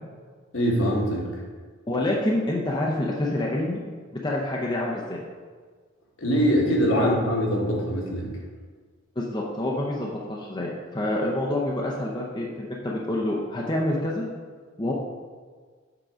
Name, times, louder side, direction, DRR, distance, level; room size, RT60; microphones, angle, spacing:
voice 1, 0.5-1.3 6.2-8.3, equal, 65° left, -2 dB, 1.5 m, -23 dB
voice 2, 1.9-3.8 4.2-5.2 6.9-7.1 9.2-14.2 14.8-14.9, left 1 dB, 20° left, -3 dB, 0.6 m, -27 dB
7.7 x 3.7 x 4.9 m, 1.6 s
head